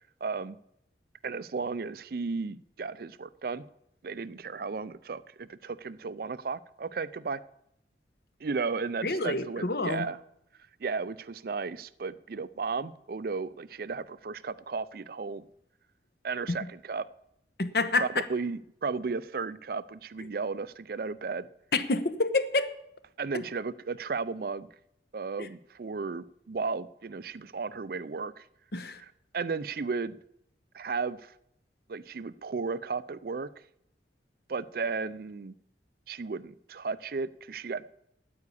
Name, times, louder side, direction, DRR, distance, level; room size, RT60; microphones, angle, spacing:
voice 1, 0.2-0.6 1.2-3.7 4.0-7.4 8.4-10.2 10.8-15.4 16.2-17.1 18.0-21.5 23.2-24.7 25.1-28.4 29.3-30.2 30.7-31.3 31.9-33.5 34.5-35.5 36.1-37.9, right 4 dB, 55° right, 16 dB, 0.4 m, -34 dB
voice 2, 9.0-10.1 16.5-16.6 17.6-18.1 21.7-22.7 25.4-25.5 28.7-29.0, left 3 dB, 60° left, 10 dB, 1.0 m, -28 dB
9.6 x 9.5 x 8.4 m, 0.77 s
head